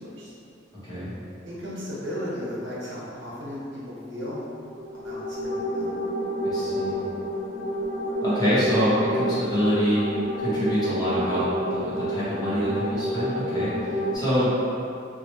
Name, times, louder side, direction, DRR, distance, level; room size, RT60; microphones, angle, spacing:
voice 1, 0.8-1.1 6.4-7.0 8.2-10.0 10.4-14.5, equal, 20° left, -12 dB, 1.3 m, -25 dB
voice 2, 1.4-4.4 5.0-5.9, equal, 75° right, -8 dB, 1.0 m, -35 dB
sound 1, 4.7-14.1, equal, 75° left, 1.0 m, -29 dB
3.1 x 2.9 x 3.0 m, 2.6 s
head